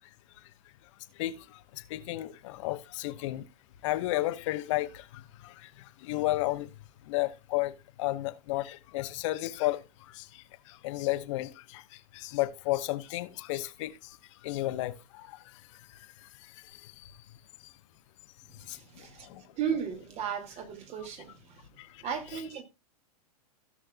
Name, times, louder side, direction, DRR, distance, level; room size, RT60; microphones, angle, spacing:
voice 1, 1.1-3.5 3.8-6.7 7.0-17.2 17.6-17.7 18.7-19.5 21.8-22.0, left 17 dB, 50° left, 1.0 m, -34 dB
voice 2, 18.7-21.7 22.0-22.6, right 7 dB, 35° right, 2.3 m, -35 dB
16.5 x 6.3 x 2.3 m
hypercardioid pair, 105°, 20 cm